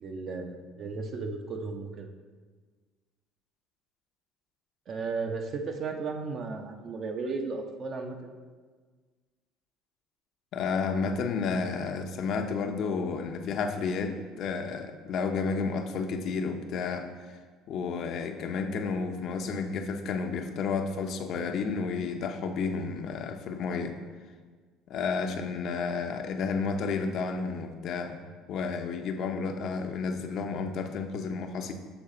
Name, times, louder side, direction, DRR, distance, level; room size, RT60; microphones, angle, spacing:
voice 1, 0.0-2.1 4.9-8.3, right 4 dB, 50° right, 5 dB, 0.6 m, -35 dB
voice 2, 10.5-17.1 17.7-24.0 24.9-28.2 28.5-31.7, left 5 dB, 60° left, 6 dB, 0.5 m, -31 dB
7.0 x 4.0 x 3.7 m, 1.5 s
supercardioid pair, 95°, 0 cm